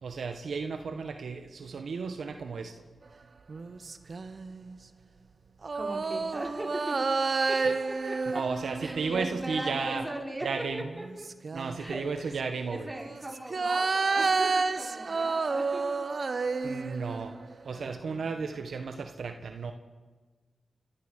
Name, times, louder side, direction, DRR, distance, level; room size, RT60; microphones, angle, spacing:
voice 1, 0.0-2.7 8.3-10.0 10.4-10.9 11.5-12.9 16.6-17.3 17.6-19.7, right 5 dB, 85° right, 6 dB, 1.5 m, -34 dB
sound 1, 3.5-4.7 5.6-10.1 10.8-12.0 12.9-17.5 17.9-18.0, right 4 dB, 60° right, 0.9 m, -31 dB
voice 2, 5.7-7.0 7.5-8.4 8.8-10.5 10.7-11.3 11.8-16.9 17.7-18.5, right 1 dB, 20° right, -1 dB, 5.3 m, -40 dB
29.0 x 13.5 x 6.7 m, 1.3 s
cardioid pair, 55°, 0 cm